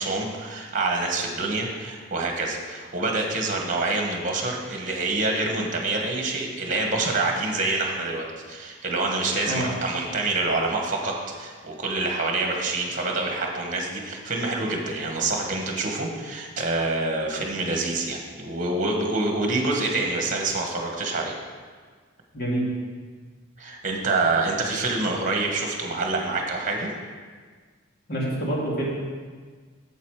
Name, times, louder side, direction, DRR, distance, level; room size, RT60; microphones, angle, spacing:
voice 1, 0.0-11.1 11.4-21.3 23.6-26.9, right 2 dB, 45° right, 1 dB, 1.6 m, -26 dB
voice 2, 22.3-22.7 28.1-28.9, right 1 dB, 55° left, -5 dB, 2.4 m, -26 dB
8.2 x 7.3 x 5.0 m, 1.5 s
head